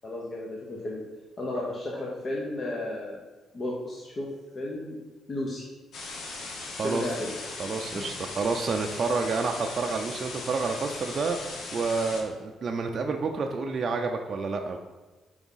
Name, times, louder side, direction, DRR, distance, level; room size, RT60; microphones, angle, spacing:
voice 1, 0.0-1.0 1.4-3.2 3.5-4.3 4.5-5.0 5.3-5.7 6.8-7.3 7.9-8.1, left 1 dB, 40° left, -3 dB, 1.0 m, -33 dB
sound 1, 5.9-12.2, left 3 dB, 70° left, 1.0 m, -38 dB
voice 2, 7.6-14.8, right 4 dB, 50° right, 3 dB, 0.4 m, -29 dB
4.8 x 3.5 x 5.5 m, 1.2 s
cardioid pair, 90°, 0 cm